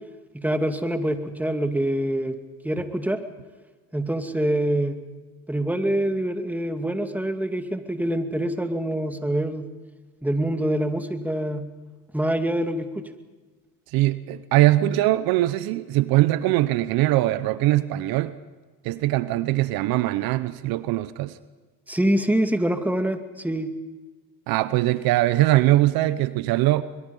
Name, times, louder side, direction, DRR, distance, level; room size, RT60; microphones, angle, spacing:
voice 1, 0.3-2.4 2.6-3.2 3.9-5.0 5.5-9.7 10.2-11.7 12.1-13.0 21.9-23.7, right 1 dB, 5° right, 6 dB, 2.4 m, -25 dB
voice 2, 13.9-18.3 18.8-21.4 24.5-26.8, right 16 dB, 65° right, 15 dB, 0.9 m, -21 dB
24.0 x 22.0 x 5.5 m, 1.3 s
hypercardioid pair, 70°, 38 cm